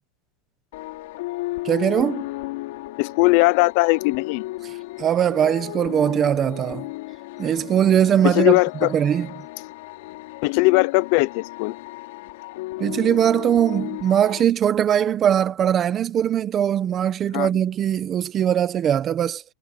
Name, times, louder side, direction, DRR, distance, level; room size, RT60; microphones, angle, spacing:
sound 1, 0.7-14.4, left 19 dB, 55° left, 3.0 m, -34 dB
voice 1, 1.6-2.2 5.0-6.8 7.4-8.5 8.9-9.3 12.8-19.4, right 9 dB, 20° right, 1.0 m, -20 dB
voice 2, 3.0-4.4 8.2-8.9 10.4-11.7 17.3-17.5, left 24 dB, 40° left, 0.6 m, -19 dB
supercardioid pair, 175°, 0 cm